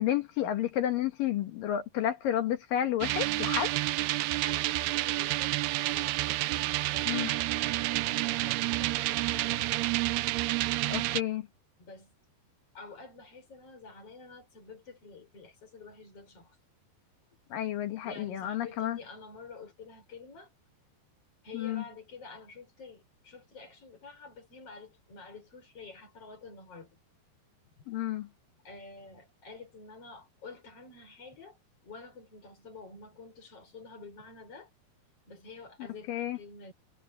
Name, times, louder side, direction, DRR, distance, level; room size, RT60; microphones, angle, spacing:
voice 1, 0.0-3.7 7.1-7.3 10.9-11.5 17.5-19.0 21.5-21.8 27.9-28.3 36.1-36.4, left 11 dB, 65° left, 2.5 m, -31 dB
sound 1, 3.0-11.2, right 18 dB, 80° right, 2.5 m, -29 dB
voice 2, 4.4-9.8 11.8-12.1 12.7-16.6 18.0-20.5 21.4-27.0 28.6-31.6 31.8-34.7 35.3-36.7, left 4 dB, 35° left, 6.3 m, -49 dB
omnidirectional pair, 5.1 m